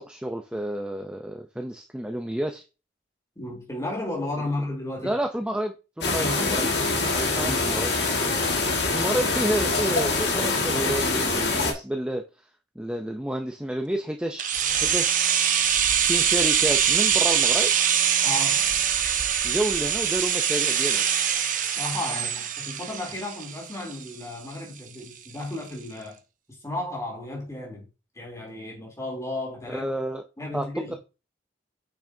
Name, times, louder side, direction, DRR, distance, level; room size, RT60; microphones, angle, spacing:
voice 1, 0.0-2.6 5.0-6.7 7.1-7.9 8.9-12.2 12.8-14.4 14.7-15.2 16.0-17.7 19.4-21.0 29.7-30.2 30.5-30.9, right 1 dB, 5° right, 0.5 m, -30 dB
voice 2, 3.3-5.2 6.2-6.9 7.4-7.8 9.2-9.3 18.2-18.8 21.8-26.2 26.6-27.9 28.1-29.9 30.4-31.0, left 2 dB, 15° left, 3.1 m, -33 dB
sound 1, 6.0-11.7, left 3 dB, 65° left, 1.9 m, -24 dB
sound 2, 14.4-24.2 24.5-24.6, right 8 dB, 45° right, 0.8 m, -23 dB
8.6 x 6.1 x 2.7 m
head